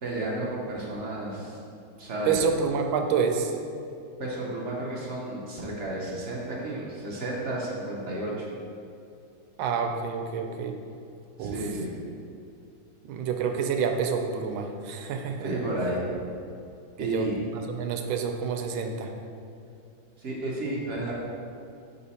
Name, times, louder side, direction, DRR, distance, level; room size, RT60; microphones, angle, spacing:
voice 1, 0.0-1.6 2.0-2.3 4.2-8.5 11.4-11.9 15.4-16.2 17.0-17.4 20.2-21.1, right 1 dB, 60° right, -4 dB, 0.7 m, -32 dB
voice 2, 2.3-3.5 9.6-10.7 11.4-11.6 13.0-15.5 17.0-17.3 17.5-19.1, right 6 dB, 85° right, 5 dB, 1.4 m, -28 dB
5.6 x 4.2 x 4.1 m, 2.5 s
omnidirectional pair, 2.2 m